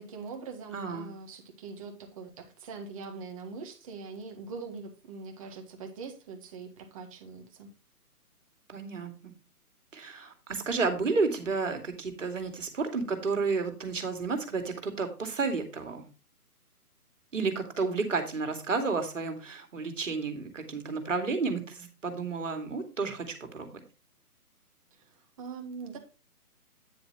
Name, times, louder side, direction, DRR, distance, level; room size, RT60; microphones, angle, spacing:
voice 1, 0.0-7.7 25.0-26.0, right 4 dB, 20° right, 3 dB, 1.6 m, -42 dB
voice 2, 0.7-1.1 8.7-9.3 9.9-16.0 17.3-23.7, right 4 dB, 55° right, 6 dB, 2.5 m, -31 dB
9.6 x 8.0 x 3.0 m, 0.33 s
figure-of-eight pair, 145°, 46 cm